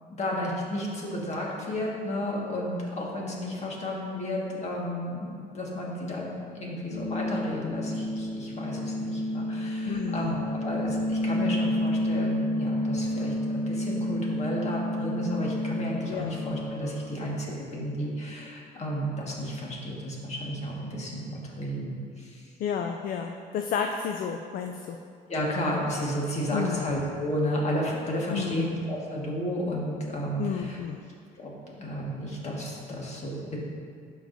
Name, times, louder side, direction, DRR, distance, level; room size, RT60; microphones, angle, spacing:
voice 1, 0.2-22.4 25.3-30.8 31.4-31.5 31.8-33.6, equal, 40° left, -3 dB, 1.7 m, -32 dB
sound 1, 6.9-16.9, left 1 dB, 80° left, 1.5 m, -30 dB
voice 2, 9.9-10.3 16.1-16.4 22.6-25.0 26.5-26.9 28.3-28.7 30.4-31.0, left 7 dB, 60° left, 4 dB, 0.4 m, -31 dB
12.5 x 4.8 x 2.7 m, 2.2 s
cardioid pair, 110°, 17 cm